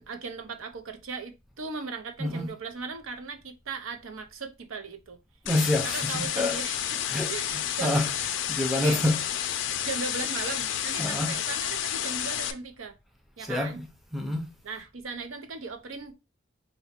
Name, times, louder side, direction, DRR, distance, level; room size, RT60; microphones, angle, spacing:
voice 1, 0.0-5.2 5.8-8.0 8.7-9.0 9.8-12.9 13.4-13.8 14.6-16.1, right 4 dB, 85° right, 0.6 m, -38 dB
voice 2, 2.2-2.5 5.4-6.6 7.1-9.2 9.7-9.8 11.0-11.4 13.4-14.5, left 1 dB, ahead, 0.4 m, -28 dB
sound 1, 5.5-12.5, left 10 dB, 65° left, 0.4 m, -30 dB
3.9 x 2.1 x 4.2 m
head